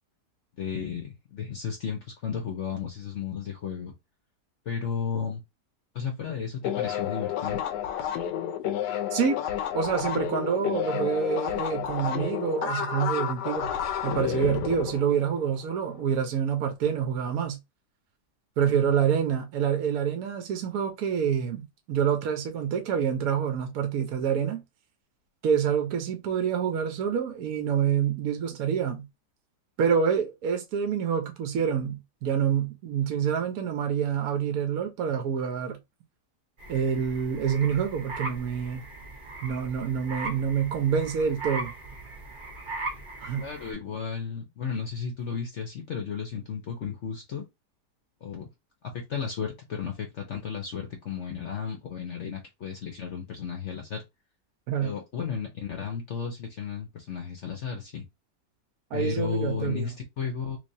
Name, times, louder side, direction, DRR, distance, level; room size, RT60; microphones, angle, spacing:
voice 1, 0.6-3.9 4.7-5.4 5.9-7.6 43.4-47.5 48.2-48.5 48.8-54.0 54.8-58.0 58.9-60.6, left 6 dB, 55° left, 0.9 m, -33 dB
sound 1, 6.6-15.8, left 10 dB, 85° left, 1.2 m, -30 dB
voice 2, 9.7-13.7 14.0-17.6 18.6-24.6 25.4-29.0 29.8-35.8 36.7-38.8 39.4-41.7 43.2-43.4 54.7-54.9 58.9-59.9, right 7 dB, 65° right, 1.2 m, -27 dB
sound 2, 36.6-43.7, right 2 dB, 35° right, 1.0 m, -39 dB
3.3 x 3.3 x 2.7 m
omnidirectional pair, 1.8 m